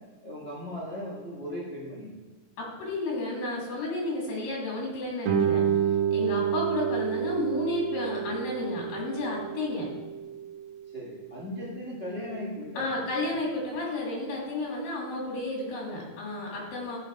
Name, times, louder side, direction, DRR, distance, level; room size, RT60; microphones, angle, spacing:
voice 1, 0.2-2.1 10.9-13.4, equal, 30° left, -8 dB, 1.2 m, -37 dB
voice 2, 2.6-5.7 6.1-9.9 12.8-17.0, left 2 dB, 85° left, -3 dB, 4.6 m, -32 dB
Guitar, 5.2-10.6, right 8 dB, 85° right, 2.8 m, -29 dB
13.0 x 5.3 x 4.8 m, 1.3 s
omnidirectional pair, 4.0 m